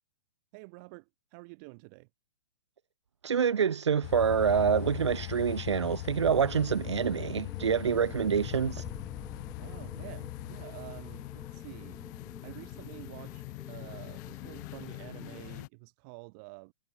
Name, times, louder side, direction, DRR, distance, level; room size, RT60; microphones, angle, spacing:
voice 1, 0.5-2.1 9.6-12.0 12.4-16.7, right 32 dB, 35° right, 7.9 m, -48 dB
voice 2, 3.2-8.8, right 7 dB, 65° right, 0.9 m, -27 dB
sound 1, 4.0-15.7, left 24 dB, 40° left, 2.3 m, -40 dB
sound 2, 6.0-15.4, left 3 dB, 5° left, 2.2 m, -50 dB
figure-of-eight pair, 110°, 16 cm